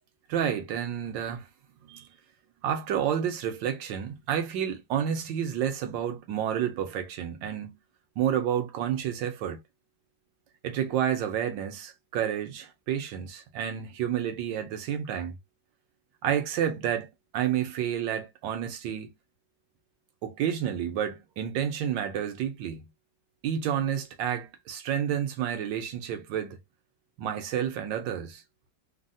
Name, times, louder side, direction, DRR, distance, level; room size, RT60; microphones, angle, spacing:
voice 1, 0.3-1.5 1.8-2.1 2.6-7.8 8.2-9.6 10.6-15.4 16.2-19.1 20.2-22.9 23.4-26.6 27.2-28.4, right 9 dB, 90° right, 1.4 m, -30 dB
3.7 x 2.1 x 2.6 m
omnidirectional pair, 2.0 m